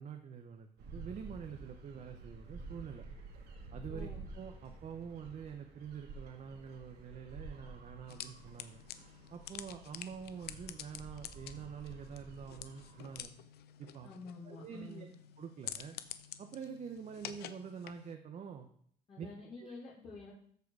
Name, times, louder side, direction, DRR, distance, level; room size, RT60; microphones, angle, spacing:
voice 1, 0.0-3.1 3.7-8.8 9.3-13.3 13.8-14.1 14.4-15.1 15.4-16.0 16.4-18.7 19.2-19.3 19.6-19.8, right 7 dB, 45° right, 5 dB, 0.9 m, -46 dB
sound 1, 0.8-13.2, right 3 dB, 75° right, 2.1 m, -51 dB
voice 2, 3.9-4.2 14.0-15.1 19.1-20.3, left 4 dB, 35° left, -7 dB, 2.7 m, -49 dB
sound 2, 8.1-18.2, left 11 dB, 70° left, 0.7 m, -49 dB
13.5 x 4.7 x 4.8 m, 0.62 s
cardioid pair, 110°, 17 cm